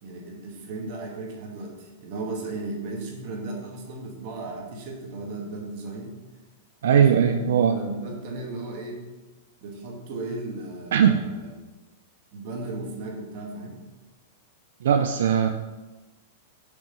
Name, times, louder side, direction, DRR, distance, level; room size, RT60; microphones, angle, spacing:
voice 1, 0.0-6.2 6.8-9.0 9.6-11.5 12.3-13.8, right 2 dB, 45° right, 0 dB, 2.1 m, -35 dB
voice 2, 6.8-7.7 10.9-11.2 14.8-15.5, right 8 dB, 75° right, 6 dB, 0.5 m, -19 dB
7.2 x 5.9 x 5.6 m, 1.2 s
supercardioid pair, 165°, 0 cm